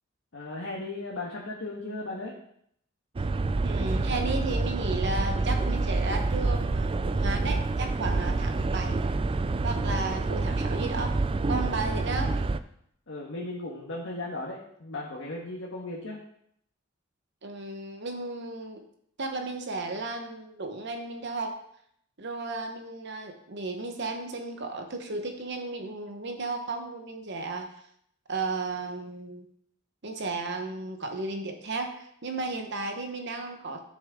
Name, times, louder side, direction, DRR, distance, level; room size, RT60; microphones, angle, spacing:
voice 1, 0.3-2.4 13.1-16.2, left 2 dB, 70° left, -4 dB, 1.5 m, -36 dB
sound 1, 3.2-12.6, right 3 dB, 25° right, 0.3 m, -27 dB
voice 2, 3.6-9.0 9.6-11.2 11.5-12.4 17.4-18.8 19.2-21.6 22.2-27.7 28.3-29.4 30.0-33.8, right 3 dB, 55° right, 5 dB, 1.1 m, -34 dB
12.0 x 6.5 x 3.6 m, 0.69 s
head